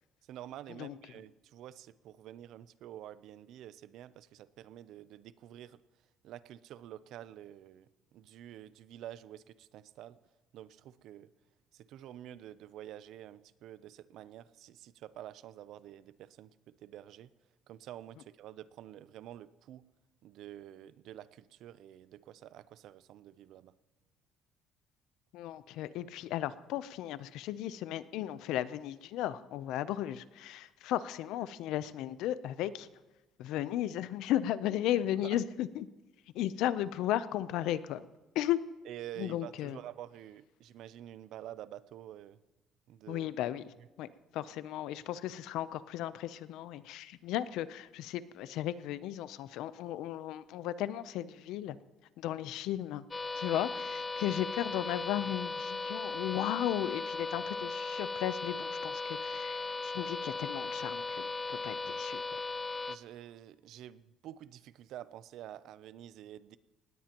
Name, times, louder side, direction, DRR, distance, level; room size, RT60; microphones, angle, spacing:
voice 1, 0.3-5.8 6.2-10.2 10.5-11.3 11.7-17.3 17.7-19.8 20.2-23.7 35.2-35.4 38.9-42.4 42.9-43.3 54.3-54.4 62.9-66.6, right 12 dB, 65° right, 17 dB, 0.5 m, -48 dB
voice 2, 25.3-32.9 33.4-35.9 36.3-38.0 38.3-38.6 39.2-39.8 43.1-43.6 44.0-51.8 52.2-53.0 53.4-62.2, left 12 dB, 80° left, 15 dB, 0.6 m, -35 dB
sound 1, 53.1-63.0, left 3 dB, 15° left, 0.5 m, -37 dB
19.0 x 17.0 x 3.0 m, 1.1 s
cardioid pair, 155°, 0 cm